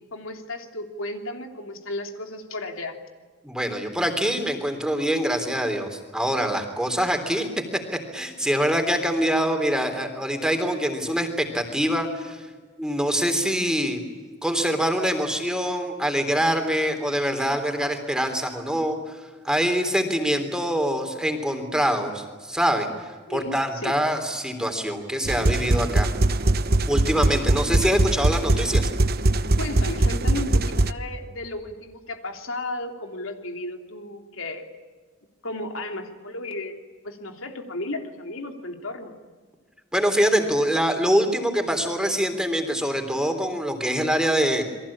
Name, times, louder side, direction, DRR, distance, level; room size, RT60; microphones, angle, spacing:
voice 1, 0.1-3.0 23.3-24.0 29.6-34.7 35.4-36.8 37.0-39.2, left 2 dB, 85° left, 4 dB, 3.2 m, -34 dB
voice 2, 3.4-7.5 8.1-12.5 12.8-14.0 14.4-26.1 26.9-28.9 39.9-44.6, equal, 5° right, 5 dB, 3.5 m, -24 dB
sound 1, 25.2-30.9, right 2 dB, 50° right, 1.0 m, -21 dB
29.5 x 23.0 x 8.7 m, 1.5 s
head